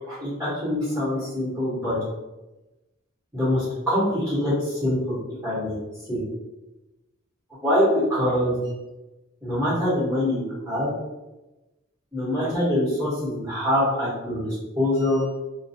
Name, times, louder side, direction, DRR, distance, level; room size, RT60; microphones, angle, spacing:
voice 1, 0.1-2.0 3.3-5.2 5.4-5.8 6.1-6.2 7.6-8.6 9.4-10.9 12.1-15.2, left 1 dB, 10° right, -12 dB, 1.0 m, -24 dB
2.3 x 2.1 x 2.7 m, 1.0 s
head